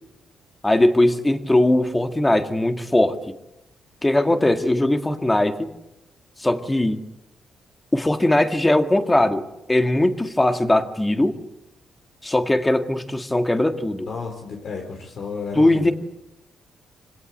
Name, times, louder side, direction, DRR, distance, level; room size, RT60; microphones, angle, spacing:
voice 1, 0.6-3.2 4.0-5.7 6.4-7.0 7.9-11.4 12.2-14.1 15.6-15.9, left 1 dB, 15° left, 7 dB, 2.0 m, -20 dB
voice 2, 14.0-15.9, left 5 dB, 60° left, 2 dB, 3.8 m, -32 dB
25.5 x 18.0 x 8.2 m, 0.91 s
cardioid pair, 110°, 0 cm